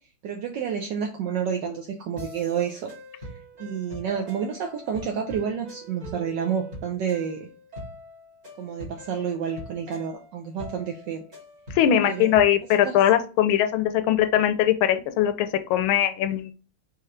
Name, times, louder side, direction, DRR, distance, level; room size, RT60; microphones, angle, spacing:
voice 1, 0.2-2.9 3.2-3.3 3.6-7.5 8.6-11.2 12.0-12.3 12.8-12.9, right 7 dB, 75° right, 3 dB, 1.1 m, -29 dB
sound 1, 2.2-12.9, equal, 20° right, 1.4 m, -43 dB
voice 2, 11.7-16.5, left 10 dB, 80° left, 10 dB, 1.4 m, -21 dB
4.4 x 2.9 x 3.6 m, 0.36 s
omnidirectional pair, 2.3 m